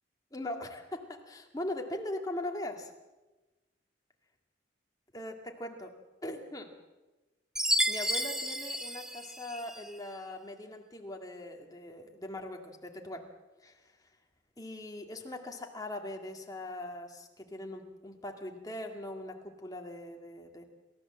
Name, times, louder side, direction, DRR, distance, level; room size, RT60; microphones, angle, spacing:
voice 1, 0.3-2.9 5.1-5.9 6.2-6.7 7.7-13.3 13.6-14.1 14.6-20.6, left 1 dB, 20° left, 3 dB, 2.1 m, -41 dB
Chime, 7.6-9.9, equal, 5° right, 0.6 m, -31 dB
27.5 x 14.0 x 7.6 m, 1.2 s
head